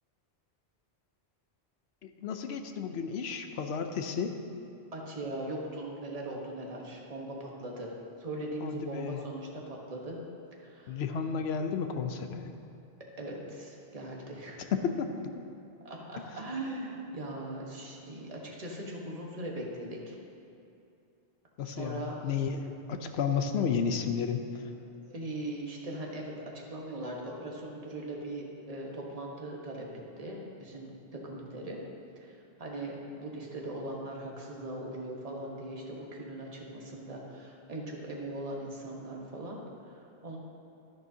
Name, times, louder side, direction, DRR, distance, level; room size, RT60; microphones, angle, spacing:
voice 1, 2.0-4.3 8.6-9.2 10.9-12.5 14.7-15.2 21.6-24.4, left 6 dB, 75° left, 6 dB, 0.9 m, -32 dB
voice 2, 4.9-7.9 8.2-10.2 10.6-11.0 13.2-14.7 15.8-20.1 21.6-22.2 25.1-31.8 32.2-40.4, right 1 dB, 35° right, -2 dB, 1.3 m, -40 dB
11.0 x 10.5 x 2.8 m, 2.7 s
omnidirectional pair, 1.1 m